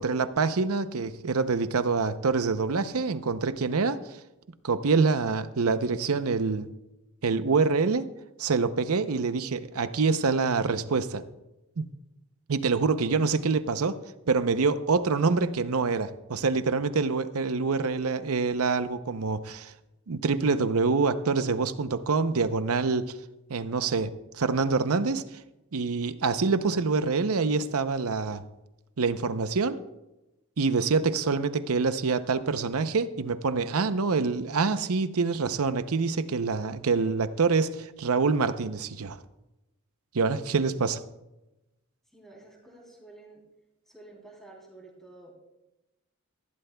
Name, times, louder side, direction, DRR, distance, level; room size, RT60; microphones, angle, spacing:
voice 1, 0.0-4.2 4.6-6.7 7.2-8.1 8.4-11.2 11.8-11.9 12.5-19.7 20.1-23.2 23.5-25.2 25.7-28.4 29.0-29.8 30.6-39.2 40.1-41.0, right 4 dB, 90° right, 0.7 m, -26 dB
voice 2, 42.1-43.4 43.9-45.3, right 2 dB, ahead, 3.3 m, -50 dB
19.0 x 15.5 x 2.3 m
head